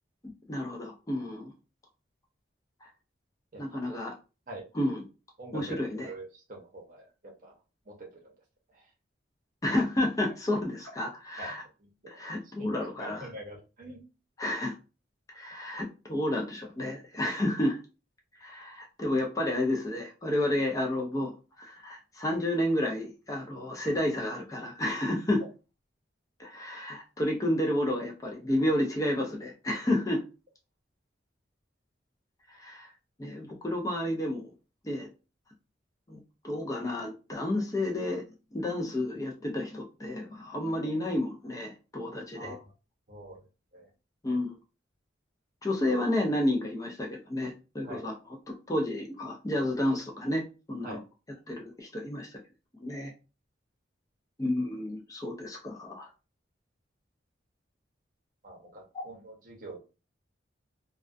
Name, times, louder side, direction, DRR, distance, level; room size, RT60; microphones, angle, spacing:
voice 1, 0.5-1.5 2.8-2.9 3.6-4.1 4.7-5.0 5.5-6.1 9.6-11.6 12.1-13.3 14.4-14.7 15.3-17.8 18.4-21.3 21.6-25.4 26.4-30.2 32.6-32.9 33.2-34.4 34.8-35.1 36.1-38.2 38.5-42.6 44.2-44.6 45.6-48.1 48.7-50.4 50.7-51.0 51.5-52.3 52.8-53.1 54.4-56.1 58.9-59.0, left 1 dB, 20° left, 0 dB, 0.4 m, -31 dB
voice 2, 3.5-3.9 4.5-4.7 5.4-7.6 7.9-8.3 8.7-8.9 11.4-12.2 12.4-14.0 40.8-40.9 42.3-42.7 43.1-43.4 43.7-43.9 47.8-48.1 50.8-51.0 58.4-59.8, right 1 dB, 45° right, 0 dB, 0.7 m, -45 dB
2.4 x 2.2 x 2.4 m, 0.31 s
head